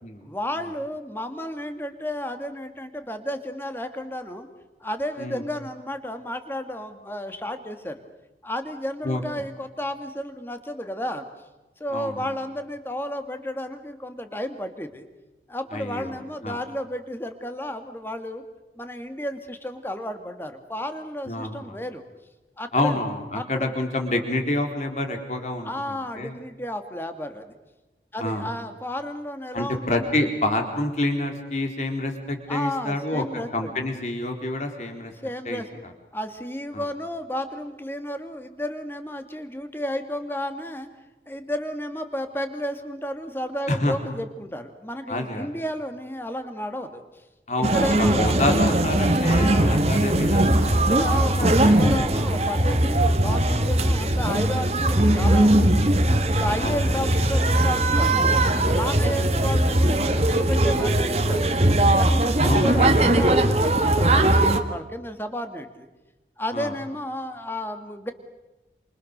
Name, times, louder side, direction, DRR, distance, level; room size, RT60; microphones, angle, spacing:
voice 1, 0.2-4.5 4.8-8.0 8.4-11.3 11.8-15.1 15.5-18.4 18.8-22.0 22.6-23.0 23.3-23.7 25.6-27.6 28.1-30.1 32.5-33.7 35.1-35.8 36.1-40.9 41.3-47.0 47.7-48.6 49.2-49.8 50.7-55.9 56.2-58.4 58.7-61.5 62.0-65.9 66.4-68.1, equal, 10° left, 7 dB, 2.1 m, -32 dB
voice 2, 11.9-12.3 15.7-16.6 21.3-21.8 22.7-25.7 26.2-26.4 28.2-28.5 29.5-33.2 33.5-35.1 35.5-35.6 36.7-36.9 43.7-43.9 45.1-45.6 47.5-52.2 56.6-56.8 59.0-59.2 62.4-63.2 66.5-66.7, left 1 dB, 40° left, 4 dB, 4.0 m, -28 dB
sound 1, 47.6-64.6, right 1 dB, 35° right, 1.7 m, -20 dB
28.5 x 27.5 x 6.7 m, 1.1 s
head